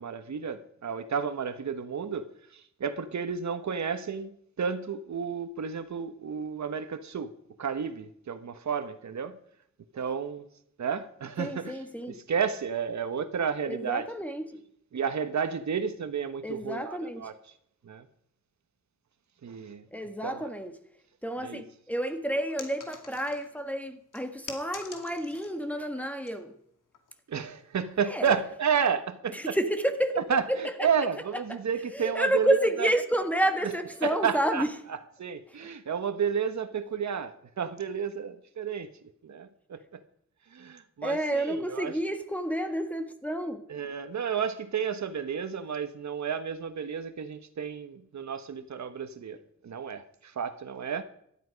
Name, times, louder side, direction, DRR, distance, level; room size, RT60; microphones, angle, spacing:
voice 1, 0.0-7.3 7.6-9.4 9.9-10.4 10.8-11.8 12.1-14.1 14.9-17.3 17.8-18.1 19.4-19.8 20.2-20.5 21.4-21.6 27.3-29.6 30.3-32.9 34.0-34.7 35.2-38.9 39.2-40.0 40.5-41.9 43.7-51.0, right 7 dB, 60° right, 1.2 m, -31 dB
voice 2, 11.4-12.2 13.6-14.6 16.4-17.3 19.9-20.8 21.2-26.5 28.0-28.4 29.3-31.1 31.5-31.6 31.9-34.7 41.0-43.6, equal, 5° left, 1.5 m, -30 dB
sound 1, 22.6-23.6 24.1-25.6 26.0-26.3 26.9-27.2, left 5 dB, 80° left, 2.5 m, -45 dB
18.0 x 12.5 x 5.2 m
wide cardioid pair, 100°, 31 cm